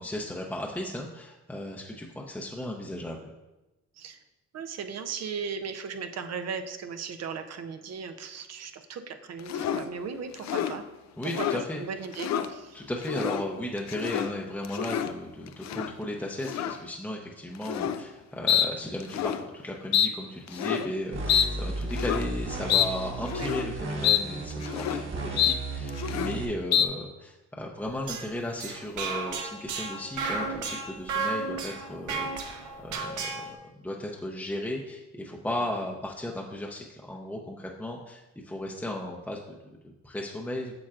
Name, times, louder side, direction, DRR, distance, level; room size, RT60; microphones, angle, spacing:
voice 1, 0.0-3.3 11.2-11.8 12.7-40.7, left 1 dB, 5° left, -1 dB, 0.7 m, -35 dB
voice 2, 4.5-10.8 11.2-12.8 13.2-13.3 23.4-23.5 26.4-26.5, right 6 dB, 60° right, 7 dB, 0.7 m, -37 dB
sound 1, 9.5-9.9 10.3-10.8 11.2-11.6 12.0-12.5 13.0-13.4 13.8-14.3 14.6-15.1 15.6-15.9 16.4-16.8 17.6-18.0 18.5-18.7 19.0-19.4 19.9-20.1 20.5-20.9 21.3-21.5 21.9-22.2 22.7-22.9 23.3-23.7 24.0-24.2 24.5-25.0 25.4-25.6 25.9-26.4 26.7-26.9, left 9 dB, 60° left, 0.5 m, -27 dB
sound 2, 21.1-26.5, right 2 dB, 40° right, 1.4 m, -34 dB
sound 3, 27.8-33.5, right 4 dB, 75° right, 1.1 m, -33 dB
8.7 x 6.2 x 2.5 m, 1.0 s
cardioid pair, 90°, 30 cm